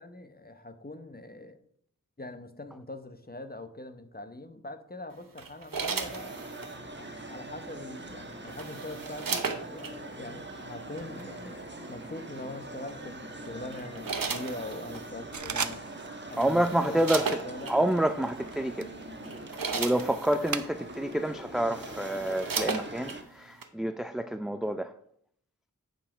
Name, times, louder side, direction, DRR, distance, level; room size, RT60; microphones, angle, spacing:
voice 1, 0.0-1.6 2.2-6.4 7.0-15.8 16.3-17.1 17.5-17.8, left 2 dB, 30° left, 0.9 m, -42 dB
sound 1, 5.4-6.8 8.1-9.9 11.0-11.2 12.9-13.2 13.7-15.1 15.9-16.0 16.3-17.8 18.5-18.7 19.1-20.6 21.3-21.4 21.7-23.2 23.6-23.7, right 5 dB, 90° right, 0.9 m, -35 dB
sound 2, 6.0-23.2, right 2 dB, 35° right, 1.2 m, -43 dB
sound 3, 15.3-16.3 16.5-16.9 17.4-21.1 21.5-23.0, right 6 dB, 60° right, 0.6 m, -39 dB
voice 2, 16.4-17.3 17.7-18.9 19.7-24.9, right 1 dB, ahead, 0.3 m, -28 dB
8.8 x 5.1 x 4.9 m
wide cardioid pair, 50°, 33 cm